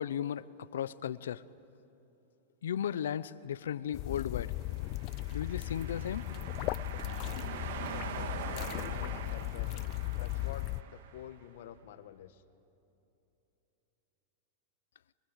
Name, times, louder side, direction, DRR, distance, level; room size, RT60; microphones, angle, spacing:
voice 1, 0.0-1.4 2.6-4.5 5.3-6.3, left 9 dB, 90° left, 17 dB, 0.6 m, -35 dB
sound 1, 3.9-10.8, left 20 dB, 45° left, 0.4 m, -37 dB
sound 2, 4.6-11.3, right 7 dB, 70° right, 1.8 m, -44 dB
voice 2, 7.8-9.9 10.2-12.4, left 10 dB, 70° left, 11 dB, 1.3 m, -49 dB
23.0 x 22.5 x 8.3 m, 2.9 s
supercardioid pair, 130°, 0 cm